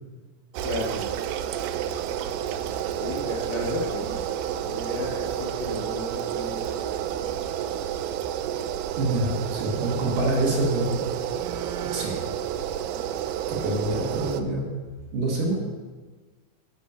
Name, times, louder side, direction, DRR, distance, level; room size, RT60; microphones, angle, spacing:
sound 1, 0.5-14.4, right 10 dB, 85° right, 2.6 m, -30 dB
voice 1, 0.6-1.0 3.0-4.2 4.7-6.8, left 2 dB, 80° left, -3 dB, 1.5 m, -33 dB
voice 2, 9.0-11.0 11.9-12.2 13.5-14.7 15.1-15.6, right 2 dB, 60° right, -2 dB, 3.0 m, -26 dB
13.0 x 4.4 x 5.7 m, 1.3 s
omnidirectional pair, 4.6 m